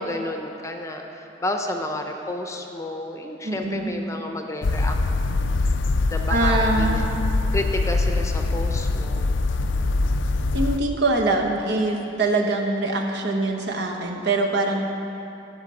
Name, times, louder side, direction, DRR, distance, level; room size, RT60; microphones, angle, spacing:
voice 1, 0.0-4.9 6.1-7.0 7.5-9.3, left 1 dB, 15° left, 3 dB, 0.7 m, -31 dB
voice 2, 3.4-3.9 6.3-7.0 10.5-14.8, right 2 dB, 65° right, 1 dB, 1.2 m, -23 dB
sound 1, 4.6-10.8, left 2 dB, 80° left, 0.5 m, -23 dB
16.0 x 5.7 x 6.3 m, 2.9 s
head